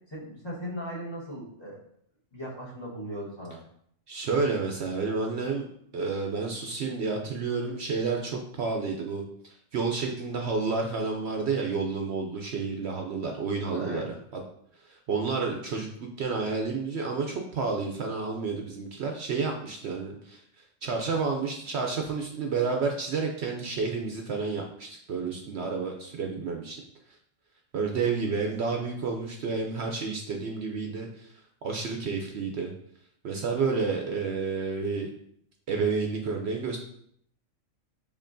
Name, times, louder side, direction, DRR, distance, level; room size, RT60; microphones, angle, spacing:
voice 1, 0.1-1.8 2.3-3.6 13.7-14.1, equal, 20° left, -6 dB, 1.1 m, -37 dB
voice 2, 4.1-5.7 5.9-14.0 14.3-14.4 14.8-20.4 20.8-26.8 27.7-31.3 31.6-32.7 33.2-35.1 35.7-36.8, right 4 dB, 65° right, 2 dB, 0.8 m, -30 dB
6.5 x 2.9 x 2.6 m, 0.68 s
omnidirectional pair, 1.4 m